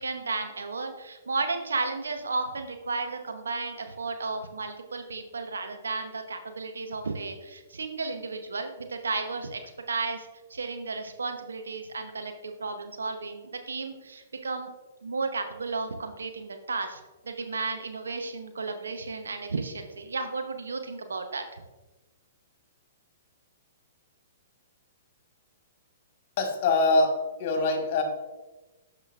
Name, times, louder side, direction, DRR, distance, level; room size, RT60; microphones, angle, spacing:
voice 1, 0.0-9.6 9.9-14.7 15.0-21.6, right 3 dB, 75° right, 6 dB, 0.8 m, -33 dB
voice 2, 26.4-28.0, left 3 dB, 45° left, 3 dB, 1.5 m, -24 dB
11.5 x 5.0 x 2.4 m, 1.1 s
figure-of-eight pair, 115°, 0 cm